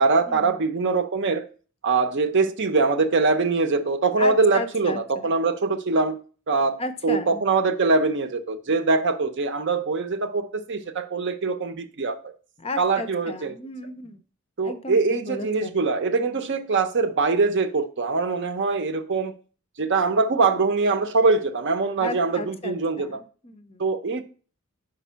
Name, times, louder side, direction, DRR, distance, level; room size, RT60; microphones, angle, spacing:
voice 1, 0.0-1.4 1.8-12.2 12.8-13.5 14.6-19.4 19.8-23.2 23.8-24.2, right 4 dB, 50° right, 0.6 m, -23 dB
voice 2, 4.2-5.3 6.8-7.4 12.6-14.2 14.6-15.8 22.0-23.8, left 2 dB, 25° left, 0.5 m, -34 dB
5.3 x 5.1 x 5.5 m
head